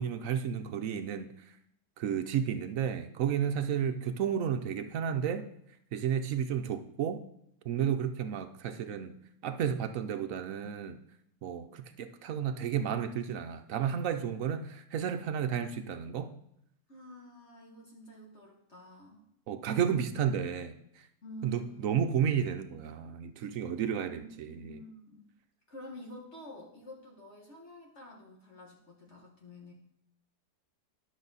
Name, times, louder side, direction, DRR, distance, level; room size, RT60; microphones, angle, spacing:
voice 1, 0.0-1.3 2.0-5.5 5.9-7.2 7.6-9.1 9.4-11.0 11.4-16.3 19.5-20.8 21.4-24.8, right 8 dB, 65° right, 9 dB, 0.9 m, -32 dB
voice 2, 16.9-19.2 21.2-22.0 24.0-25.3 25.7-29.7, equal, 45° left, -2 dB, 1.7 m, -49 dB
11.0 x 6.3 x 4.0 m, 0.76 s
omnidirectional pair, 1.7 m